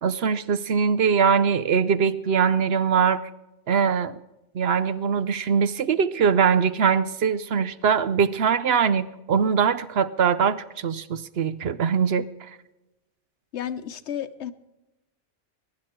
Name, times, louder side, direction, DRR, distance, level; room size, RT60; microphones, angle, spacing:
voice 1, 0.0-3.2 3.7-4.2 4.5-12.5, right 6 dB, 60° right, 14 dB, 0.9 m, -22 dB
voice 2, 13.5-14.5, left 9 dB, 70° left, 12 dB, 1.1 m, -32 dB
22.0 x 11.0 x 4.4 m, 0.96 s
omnidirectional pair, 1.2 m